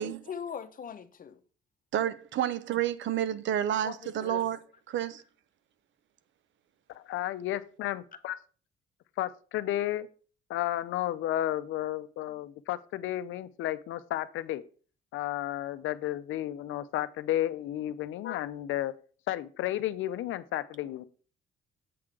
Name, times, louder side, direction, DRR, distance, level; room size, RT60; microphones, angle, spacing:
voice 1, 0.0-1.4 3.8-4.5, left 7 dB, 45° left, 0.9 m, -41 dB
voice 2, 1.9-4.6 4.9-5.2, right 11 dB, 70° right, 0.7 m, -30 dB
voice 3, 6.9-8.4 9.2-10.1 10.5-14.6 15.1-18.9 19.3-21.0, left 13 dB, 85° left, 0.6 m, -32 dB
7.6 x 3.8 x 5.9 m
cardioid pair, 90°, 20 cm